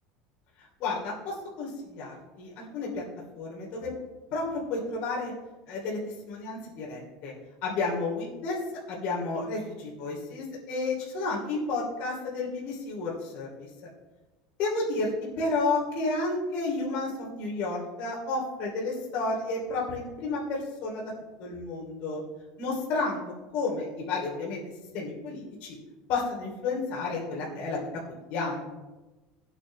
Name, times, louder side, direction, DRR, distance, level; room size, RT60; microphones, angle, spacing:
voice 1, 0.8-3.0 3.3-3.9 4.3-5.3 5.7-7.3 7.6-8.6 8.9-13.5 14.6-15.1 15.4-21.0 21.4-22.2 22.6-23.2 23.5-24.6 24.9-25.8 26.1-27.9 28.3-28.6, left 3 dB, 50° left, -3 dB, 2.9 m, -31 dB
17.5 x 8.7 x 3.2 m, 1.2 s
cardioid pair, 170°, 3 cm